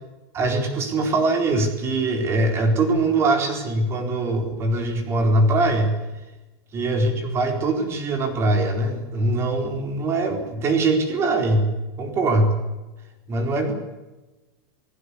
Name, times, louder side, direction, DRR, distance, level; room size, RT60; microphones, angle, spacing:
voice 1, 0.3-6.0 6.7-11.7 12.0-12.5 13.3-13.7, right 2 dB, 20° right, 6 dB, 4.3 m, -22 dB
29.0 x 18.5 x 8.4 m, 1.1 s
supercardioid pair, 170°, 13 cm